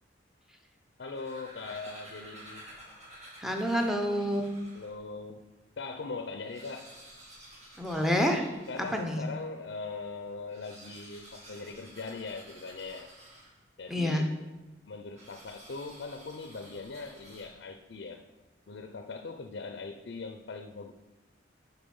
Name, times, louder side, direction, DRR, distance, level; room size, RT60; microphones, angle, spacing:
voice 1, 1.0-2.7 4.7-5.5 5.8-6.9 8.7-13.1 13.8-14.4 14.9-18.2 18.7-20.9, left 4 dB, 70° left, 7 dB, 0.5 m, -40 dB
sound 1, 1.0-5.0 5.6-5.7 5.9-6.0 6.3-9.4 10.4-13.8 15.1-17.8, right 1 dB, 40° right, 1.8 m, -52 dB
voice 2, 3.4-4.6 7.8-8.5 8.9-9.3 13.9-14.2, equal, ahead, 3 dB, 0.7 m, -28 dB
6.9 x 5.8 x 5.4 m, 1.1 s
head